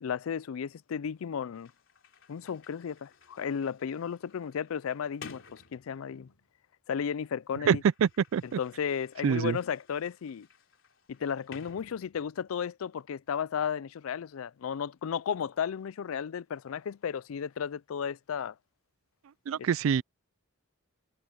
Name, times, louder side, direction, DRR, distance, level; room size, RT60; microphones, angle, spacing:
voice 1, 0.0-1.7 2.3-6.3 6.9-7.8 8.6-10.5 11.1-18.6, left 7 dB, 85° left, 0.4 m, -34 dB
Sliding door, 1.5-6.6 7.5-12.5, left 4 dB, 65° left, 3.5 m, -54 dB
voice 2, 7.7-8.6 9.2-9.6 19.5-20.0, right 7 dB, 75° right, 0.3 m, -25 dB
head